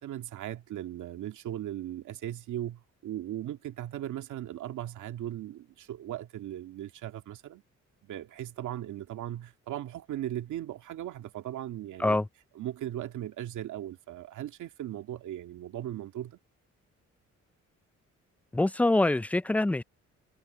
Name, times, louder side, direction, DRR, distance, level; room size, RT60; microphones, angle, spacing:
voice 1, 0.0-7.6 8.0-12.2 12.6-16.4, right 12 dB, 80° right, 2.2 m, -38 dB
voice 2, 18.5-19.8, left 2 dB, 5° left, 0.3 m, -25 dB
cardioid pair, 90°, 30 cm